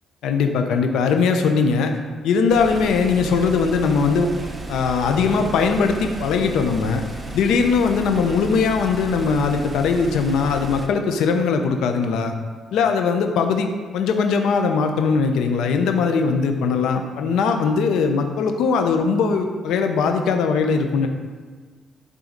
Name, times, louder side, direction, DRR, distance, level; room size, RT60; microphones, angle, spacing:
voice 1, 0.2-2.0 2.2-4.3 4.7-7.0 7.3-12.3 12.7-21.1, left 5 dB, 85° left, 5 dB, 0.8 m, -20 dB
sound 1, 2.5-10.9, right 3 dB, 20° right, 1.0 m, -34 dB
11.0 x 3.8 x 5.2 m, 1.5 s
cardioid pair, 90°, 0 cm